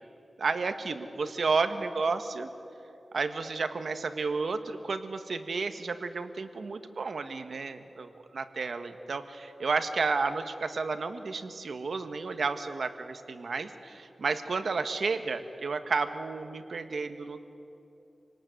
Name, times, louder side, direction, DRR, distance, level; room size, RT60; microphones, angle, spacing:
voice 1, 0.4-2.5 3.1-17.4, right 4 dB, 70° right, 8 dB, 1.5 m, -32 dB
27.5 x 19.0 x 9.4 m, 2.9 s
wide cardioid pair, 95°, 0 cm